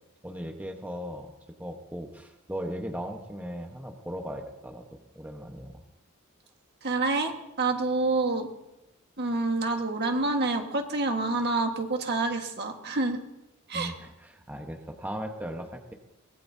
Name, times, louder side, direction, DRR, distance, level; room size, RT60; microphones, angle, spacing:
voice 1, 0.2-1.3 1.6-5.7 13.7-15.9, equal, 10° right, 2 dB, 1.2 m, -38 dB
voice 2, 6.8-8.5 9.2-13.2 13.7-13.9, right 3 dB, 50° right, 4 dB, 1.7 m, -27 dB
24.0 x 20.0 x 2.8 m, 0.93 s
head